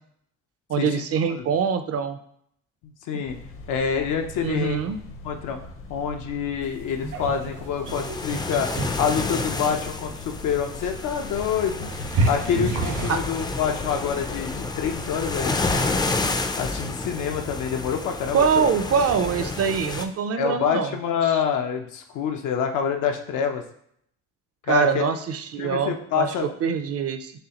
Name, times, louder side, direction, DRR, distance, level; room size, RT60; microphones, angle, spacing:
voice 1, 0.7-2.2 4.4-5.0 13.1-13.2 18.3-20.9 24.7-26.3 26.6-27.3, right 6 dB, 50° right, 10 dB, 0.5 m, -24 dB
voice 2, 2.8-3.3 3.7-4.8 5.2-5.6 5.9-8.7 9.0-11.9 12.3-16.0 16.6-18.4 19.4-19.5 20.4-23.6 24.7-25.0 25.6-26.5, left 7 dB, 85° left, 4 dB, 0.7 m, -27 dB
sound 1, 3.2-16.2, left 2 dB, 45° left, 0.6 m, -40 dB
sound 2, 6.6-13.2, right 2 dB, 75° right, 1.3 m, -30 dB
sound 3, 7.9-20.0, left 3 dB, 15° left, 0.3 m, -30 dB
6.6 x 2.4 x 2.9 m, 0.68 s
cardioid pair, 90°, 30 cm